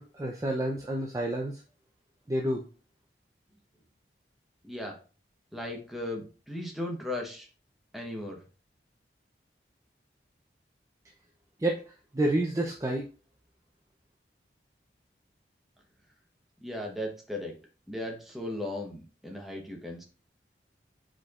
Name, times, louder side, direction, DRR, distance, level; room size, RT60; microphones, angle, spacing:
voice 1, 0.0-1.6 2.3-2.6 11.6-13.1, right 1 dB, 20° right, 0 dB, 0.5 m, -29 dB
voice 2, 4.6-5.0 5.5-7.5 7.9-8.4 16.6-17.5 17.9-20.0, left 1 dB, ahead, 0 dB, 0.9 m, -36 dB
5.0 x 4.3 x 2.4 m, 0.35 s
head